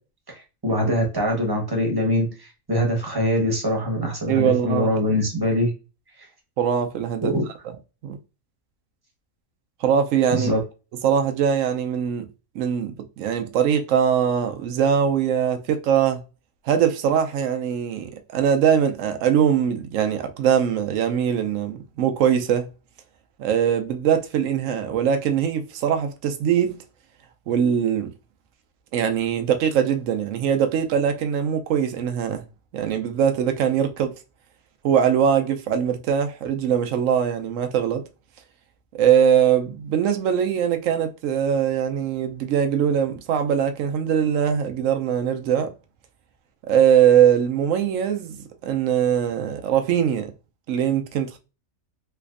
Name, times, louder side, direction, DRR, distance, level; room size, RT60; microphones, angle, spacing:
voice 1, 0.3-5.7 6.2-6.3 7.2-7.4 10.3-10.6, equal, 20° right, 0.9 m, -23 dB
voice 2, 4.3-4.9 6.6-7.3 7.6-7.7 8.0-8.2 9.8-10.5 11.0-12.3 12.5-16.2 16.6-22.7 23.4-26.7 27.5-28.1 28.9-32.4 32.7-34.1 34.8-38.0 38.9-45.7 46.6-50.3 50.7-51.4, right 8 dB, 70° right, 0.9 m, -21 dB
3.3 x 3.0 x 2.4 m
omnidirectional pair, 1.5 m